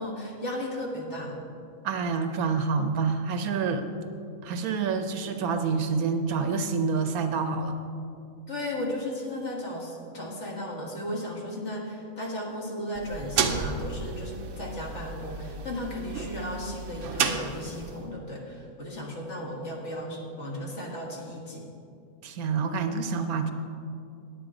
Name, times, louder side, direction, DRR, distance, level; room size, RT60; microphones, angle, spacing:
voice 1, 0.0-1.4 8.5-21.7, left 1 dB, 55° left, -1 dB, 1.8 m, -35 dB
voice 2, 1.8-3.8 4.4-7.7 22.2-23.5, right 5 dB, 85° right, 7 dB, 1.3 m, -27 dB
sound 1, 12.9-18.0, right 6 dB, 65° right, 0.9 m, -32 dB
9.3 x 9.0 x 4.9 m, 2.5 s
omnidirectional pair, 1.5 m